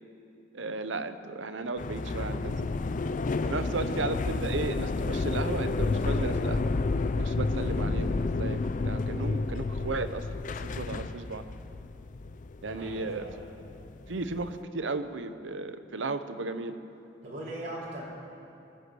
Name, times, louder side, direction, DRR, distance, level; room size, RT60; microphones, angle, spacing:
voice 1, 0.5-2.7 3.4-6.7 7.2-10.2 10.7-11.4 12.6-13.3 14.1-16.8, right 3 dB, 85° right, 10 dB, 0.8 m, -35 dB
sound 1, 1.8-14.6, left 3 dB, 45° left, 0.5 m, -31 dB
voice 2, 3.6-4.0 12.6-13.5 17.2-18.0, right 1 dB, 65° right, -6 dB, 3.6 m, -40 dB
22.5 x 9.3 x 6.2 m, 2.9 s
head